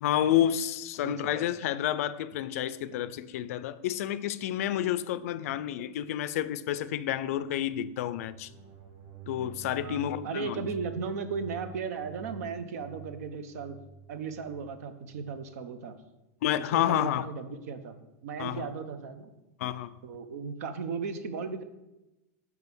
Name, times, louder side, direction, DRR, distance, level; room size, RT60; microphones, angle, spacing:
voice 1, 0.0-8.5 9.3-10.7 16.4-17.3 18.4-18.7 19.6-19.9, left 11 dB, 65° left, 0.4 m, -30 dB
voice 2, 1.0-1.5 5.5-5.6 9.8-13.8 14.1-16.0 16.6-19.3 20.0-21.6, right 5 dB, 70° right, 0.8 m, -36 dB
sound 1, 8.1-15.4, right 8 dB, 30° right, 1.0 m, -48 dB
5.5 x 4.6 x 6.1 m
supercardioid pair, 165°, 9 cm